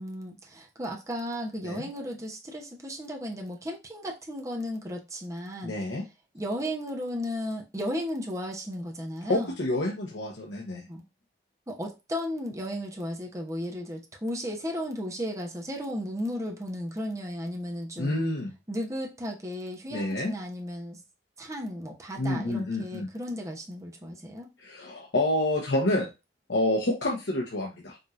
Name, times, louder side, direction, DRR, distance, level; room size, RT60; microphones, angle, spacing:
voice 1, 0.0-5.8 6.3-9.5 10.9-11.0 11.7-18.1 18.7-21.0 21.4-24.5, equal, 20° right, 0.9 m, -35 dB
voice 2, 5.6-6.0 9.3-10.8 18.0-18.5 19.9-20.3 22.2-23.1 24.6-26.1 26.5-28.0, left 1 dB, 70° left, 0.9 m, -28 dB
5.2 x 3.0 x 2.6 m
head